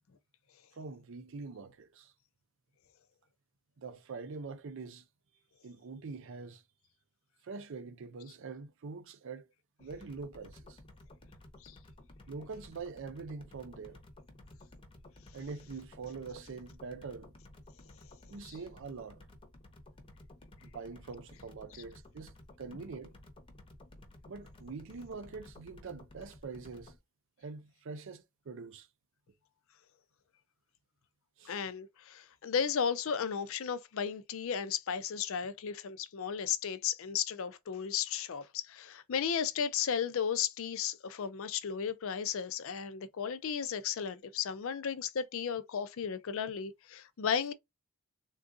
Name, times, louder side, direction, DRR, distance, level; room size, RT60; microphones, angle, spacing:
voice 1, 0.7-2.1 3.8-5.0 5.6-6.6 7.4-9.5 9.8-10.8 12.3-14.0 15.3-17.3 18.3-19.2 20.6-23.1 24.3-26.9 27.4-28.9 31.4-31.6, right 4 dB, 60° right, 0.5 m, -44 dB
sound 1, 9.8-27.0, left 1 dB, 25° left, 0.8 m, -55 dB
voice 2, 31.5-47.5, left 7 dB, 60° left, 0.4 m, -34 dB
3.7 x 2.4 x 2.5 m
head